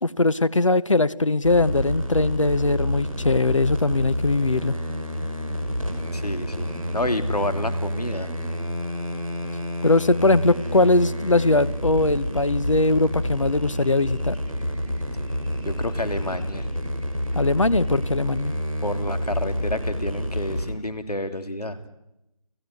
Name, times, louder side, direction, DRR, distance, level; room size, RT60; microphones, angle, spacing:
voice 1, 0.0-4.8 9.8-14.4 17.3-18.5, left 2 dB, 55° left, 15 dB, 1.0 m, -21 dB
sound 1, 1.4-20.7, equal, ahead, 3.3 m, -28 dB
voice 2, 6.1-8.3 15.6-16.7 18.8-21.8, left 1 dB, 80° left, 9 dB, 3.2 m, -29 dB
30.0 x 16.0 x 9.6 m, 0.89 s
figure-of-eight pair, 175°, 20 cm